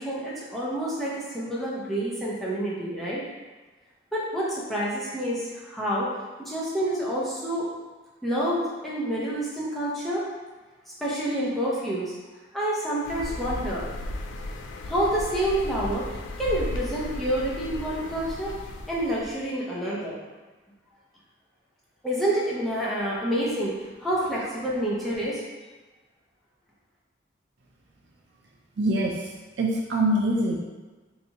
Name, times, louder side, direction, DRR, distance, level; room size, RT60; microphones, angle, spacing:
voice 1, 0.0-3.2 4.1-6.1 6.4-7.7 8.2-10.2 11.0-12.1 12.5-13.8 14.9-16.1 16.4-18.5 18.9-20.2 22.0-23.7 24.0-25.4, right 1 dB, ahead, -7 dB, 0.7 m, -28 dB
sound 1, 13.0-19.3, left 1 dB, 85° left, 0.3 m, -35 dB
voice 2, 28.8-29.3 29.6-30.6, right 1 dB, 70° right, -2 dB, 0.4 m, -24 dB
3.3 x 2.8 x 2.8 m, 1.2 s
head